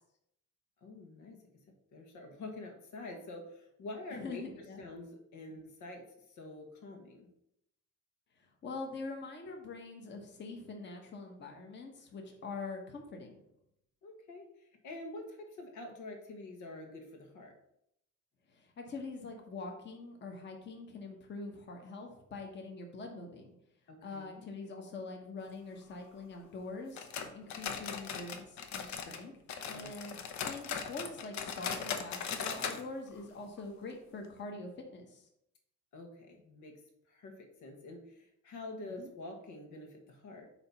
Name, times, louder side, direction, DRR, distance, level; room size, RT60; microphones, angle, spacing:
voice 1, 0.8-1.6 1.9-7.3 14.0-17.5 23.9-24.4 29.7-29.9 35.9-40.5, left 2 dB, 85° left, 3 dB, 1.4 m, -47 dB
voice 2, 4.1-4.8 8.4-13.4 18.5-23.5 24.0-29.3 29.6-35.2 38.8-39.1, left 3 dB, 40° left, 2 dB, 1.1 m, -44 dB
sound 1, 27.0-29.2 29.5-32.8 33.1-33.2 33.6-33.7 34.2-34.3, left 6 dB, 70° left, 0.9 m, -39 dB
8.7 x 3.0 x 5.6 m, 0.78 s
cardioid pair, 160°, 29 cm